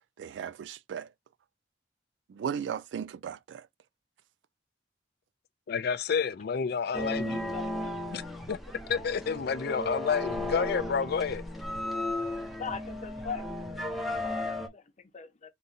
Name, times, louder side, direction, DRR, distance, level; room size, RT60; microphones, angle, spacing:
voice 1, 0.2-1.1 2.3-3.7, right 7 dB, 75° right, 0.3 m, -36 dB
voice 2, 5.7-7.5 8.1-8.2 8.5-8.6 8.9-11.4, left 6 dB, 60° left, 0.4 m, -29 dB
voice 3, 6.9-7.9 12.6-13.4 13.7-15.5, left 6 dB, 40° left, 0.8 m, -41 dB
Blackpool High Tide Organ, 6.9-14.7, left 1 dB, ahead, 0.7 m, -35 dB
3.8 x 2.6 x 4.0 m
head